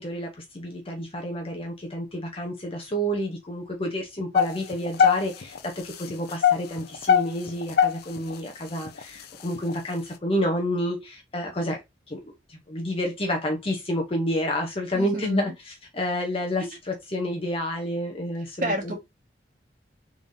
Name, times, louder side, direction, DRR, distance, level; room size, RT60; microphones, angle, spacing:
voice 1, 0.0-11.8 12.1-12.2 12.5-18.9, equal, 30° left, 0.8 m, -29 dB
sound 1, 4.3-5.6 6.1-8.3 8.9-9.0 9.6-9.7, left 7 dB, 55° left, 0.5 m, -19 dB
voice 2, 14.9-15.5 16.6-16.7 18.6-18.9, right 1 dB, 45° right, 1.6 m, -29 dB
3.6 x 3.4 x 2.6 m
head